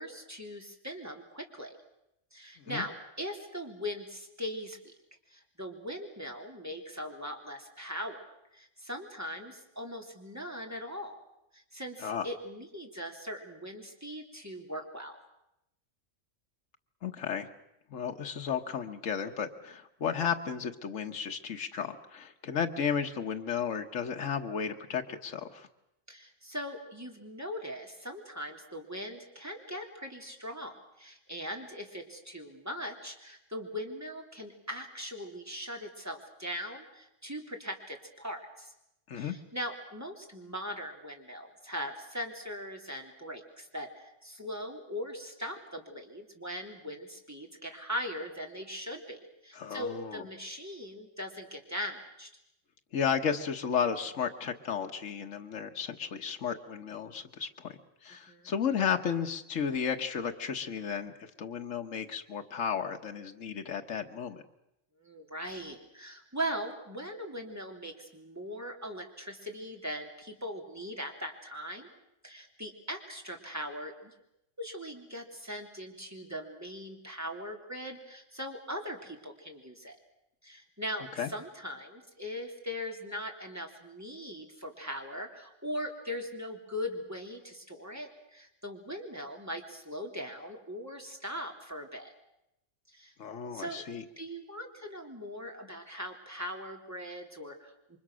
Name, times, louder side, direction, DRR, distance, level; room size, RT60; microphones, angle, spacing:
voice 1, 0.0-1.8 2.3-4.9 5.3-8.2 8.5-11.2 11.5-15.2 26.1-38.7 39.2-52.3 58.1-58.5 65.0-71.9 72.2-74.1 74.6-80.0 80.4-92.1 92.9-93.1 93.5-93.8 94.2-98.0, equal, 10° right, 2 dB, 3.4 m, -40 dB
voice 2, 17.0-17.5 17.9-25.7 39.1-39.4 49.5-50.2 52.9-64.4 81.2-81.3 93.2-94.0, left 7 dB, 80° left, 5 dB, 1.6 m, -33 dB
29.0 x 24.0 x 6.3 m, 0.84 s
omnidirectional pair, 1.3 m